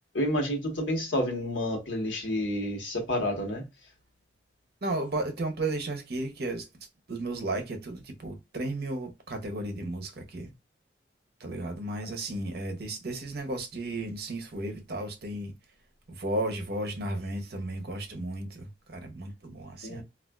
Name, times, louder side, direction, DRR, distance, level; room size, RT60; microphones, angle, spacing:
voice 1, 0.1-3.6 19.8-20.0, left 1 dB, 85° left, 1.0 m, -29 dB
voice 2, 4.8-6.7 7.1-10.5 11.4-15.5 16.1-20.0, right 2 dB, 55° right, 0.7 m, -34 dB
3.4 x 2.3 x 2.2 m
head